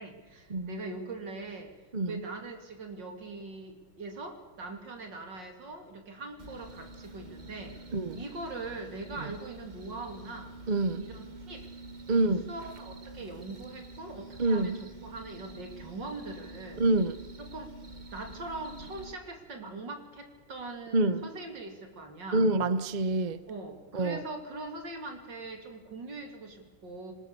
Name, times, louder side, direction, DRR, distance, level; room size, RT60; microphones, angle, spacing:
voice 1, 0.0-1.7 2.1-7.8 8.1-10.5 11.0-11.7 12.1-16.8 17.4-17.8 18.1-22.4 23.5-27.1, right 3 dB, 65° right, 3.5 m, -42 dB
sound 1, 6.4-19.1, right 2 dB, 25° right, 1.2 m, -47 dB
voice 2, 7.9-8.2 10.7-11.1 12.1-12.5 14.4-14.8 16.8-17.2 20.9-21.3 22.3-23.4 23.9-24.2, right 2 dB, 45° right, 0.5 m, -27 dB
25.0 x 20.0 x 6.9 m
omnidirectional pair, 2.1 m